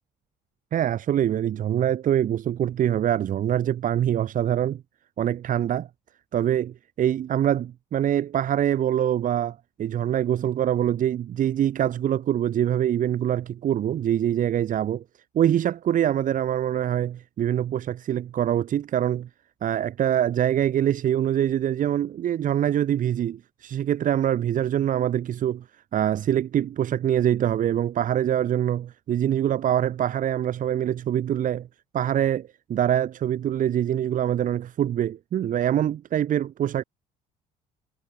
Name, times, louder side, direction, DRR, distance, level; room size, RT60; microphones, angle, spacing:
voice 1, 0.7-4.8 5.2-5.9 6.3-15.0 15.3-19.3 19.6-25.6 25.9-31.7 31.9-36.8, right 10 dB, 50° right, 1.1 m, -24 dB
cardioid pair, 110°, 17 cm